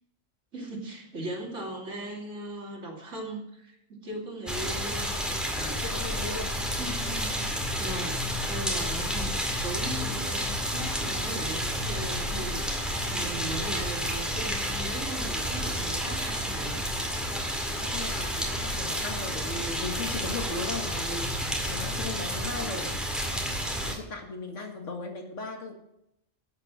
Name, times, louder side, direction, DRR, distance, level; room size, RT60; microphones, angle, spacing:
voice 1, 0.5-5.4 6.8-16.8, right 2 dB, 70° right, -2 dB, 3.1 m, -38 dB
sound 1, 4.5-23.9, equal, ahead, 1.9 m, -30 dB
voice 2, 5.5-6.6 7.5-7.7 17.7-23.0 23.8-25.7, left 3 dB, 75° left, 4 dB, 2.1 m, -37 dB
12.0 x 8.2 x 6.1 m, 0.81 s
omnidirectional pair, 1.3 m